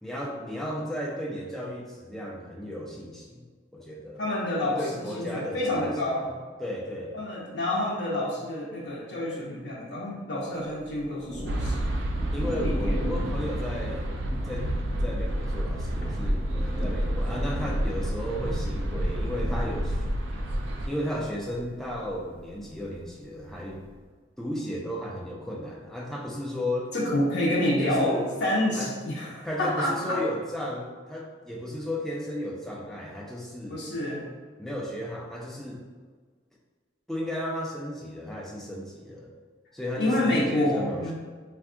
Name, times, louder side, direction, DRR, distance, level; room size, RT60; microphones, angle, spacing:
voice 1, 0.0-3.4 3.7-4.3 4.8-6.3 6.6-7.2 12.3-14.1 14.4-14.7 15.0-20.1 20.9-23.8 24.4-26.9 27.8-28.3 28.8-28.9 29.4-33.8 34.6-35.8 37.1-39.3 39.7-41.1, equal, ahead, -3 dB, 0.4 m, -34 dB
voice 2, 4.2-6.3 7.1-11.9 12.6-12.9 26.9-28.1 28.4-30.2 33.7-34.3 40.0-41.1, left 1 dB, 70° left, -5 dB, 0.5 m, -28 dB
Thunder, 10.8-24.0, equal, 55° right, 0.7 m, -36 dB
sound 1, 11.4-20.9, right 1 dB, 90° right, 0.4 m, -30 dB
3.4 x 2.2 x 2.4 m, 1.5 s
head